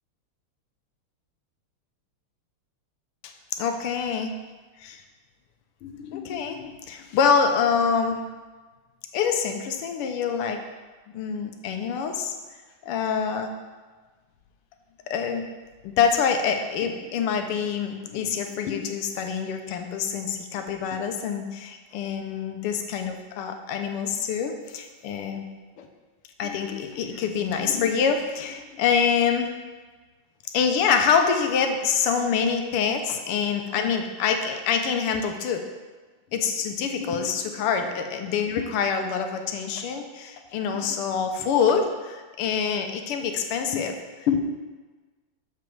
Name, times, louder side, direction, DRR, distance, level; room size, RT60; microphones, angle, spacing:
voice 1, 3.6-4.3 4.8-5.0 5.8-8.2 9.1-10.6 11.1-12.3 12.8-13.5 15.1-15.4 15.8-25.4 25.8-25.9 26.4-29.5 30.5-35.6 36.3-44.0 44.2-44.4, left 6 dB, 90° left, 5 dB, 1.6 m, -25 dB
6.8 x 5.1 x 4.6 m, 1.3 s
omnidirectional pair, 2.4 m